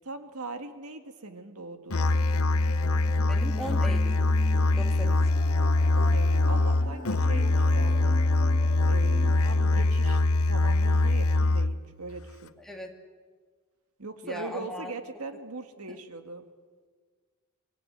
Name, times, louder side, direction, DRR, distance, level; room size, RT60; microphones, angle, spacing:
voice 1, 0.0-2.2 5.9-8.2 8.9-12.5 14.0-16.5, right 3 dB, 90° right, 7 dB, 2.0 m, -40 dB
Musical instrument, 1.9-11.9, left 2 dB, 80° left, 0.9 m, -23 dB
sound 1, 1.9-9.9, left 2 dB, 35° left, 3.3 m, -41 dB
voice 2, 3.3-4.2 4.7-5.3 12.6-12.9 14.2-14.9 15.9-16.0, equal, ahead, 2 dB, 2.4 m, -38 dB
25.5 x 20.5 x 8.0 m, 1.5 s
head